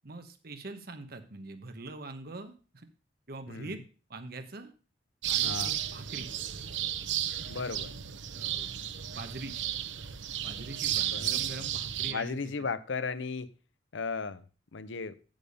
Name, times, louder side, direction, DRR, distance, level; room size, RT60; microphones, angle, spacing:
voice 1, 0.0-2.9 3.3-3.8 4.1-4.7 5.3-6.3 8.3-9.7 10.4-12.4, right 2 dB, 55° right, 1.2 m, -43 dB
voice 2, 3.5-3.8 5.4-5.8 7.5-7.9 11.0-11.7 12.1-13.5 13.9-14.4 14.7-15.1, left 4 dB, 90° left, 0.7 m, -36 dB
sound 1, 5.2-12.1, right 11 dB, 85° right, 0.7 m, -33 dB
9.1 x 7.1 x 5.3 m
head